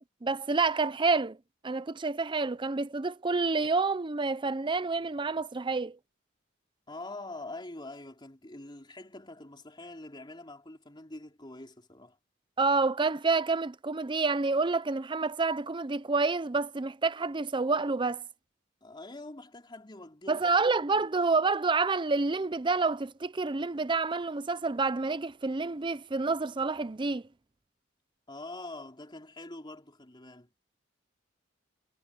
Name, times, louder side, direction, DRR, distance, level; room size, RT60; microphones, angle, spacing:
voice 1, 0.2-1.4 1.6-6.0 12.6-18.2 20.3-27.2, right 3 dB, 25° right, 0.6 m, -28 dB
voice 2, 6.9-12.2 18.8-20.4 20.9-21.1 28.3-30.5, left 2 dB, 25° left, 3.8 m, -44 dB
head